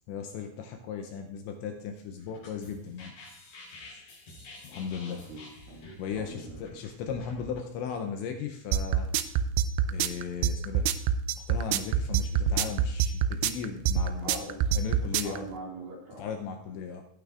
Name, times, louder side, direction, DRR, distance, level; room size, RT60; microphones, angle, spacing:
voice 1, 0.1-3.1 3.8-4.0 4.6-5.2 6.0-9.1 9.9-10.9 11.4-15.5 16.2-17.0, left 6 dB, 80° left, 4 dB, 2.8 m, -37 dB
sound 1, 2.2-7.6, left 2 dB, 45° left, 5.5 m, -49 dB
voice 2, 5.1-5.9 6.1-6.8 14.2-14.7 15.1-16.3, right 2 dB, 50° right, -3 dB, 3.3 m, -43 dB
sound 2, 8.7-15.4, right 8 dB, 90° right, 2.6 m, -25 dB
17.5 x 9.2 x 2.5 m, 0.69 s
omnidirectional pair, 5.7 m